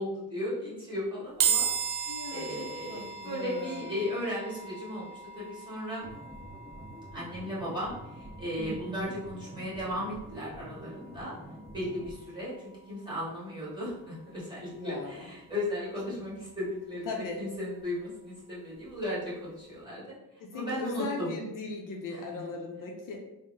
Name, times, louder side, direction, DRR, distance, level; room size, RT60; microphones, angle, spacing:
voice 1, 0.0-6.1 7.1-11.3 11.7-20.0 20.5-21.3 22.1-22.4, left 1 dB, 10° right, -7 dB, 1.4 m, -36 dB
sound 1, 1.4-14.7, right 7 dB, 60° right, 0.7 m, -37 dB
voice 2, 2.0-3.9 8.6-9.2 14.7-15.3 17.0-17.4 20.4-23.2, left 3 dB, 60° left, 1 dB, 0.5 m, -38 dB
sound 2, 6.0-12.1, right 1 dB, 5° left, 0.6 m, -47 dB
3.4 x 2.0 x 3.1 m, 0.92 s
cardioid pair, 125°, 38 cm